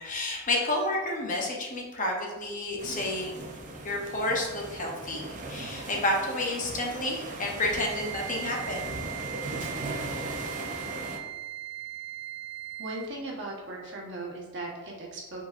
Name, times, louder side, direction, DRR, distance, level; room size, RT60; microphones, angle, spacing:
voice 1, 0.0-3.4 3.8-9.0, left 1 dB, 35° left, 0 dB, 0.7 m, -30 dB
sound 1, 2.8-11.2, right 2 dB, 35° right, 0.6 m, -38 dB
Wind instrument woodwind instrument, 7.8-13.2, right 15 dB, 90° right, 0.5 m, -39 dB
voice 2, 12.8-15.4, right 2 dB, 55° right, -3 dB, 1.1 m, -38 dB
5.2 x 3.9 x 2.5 m, 1.2 s
head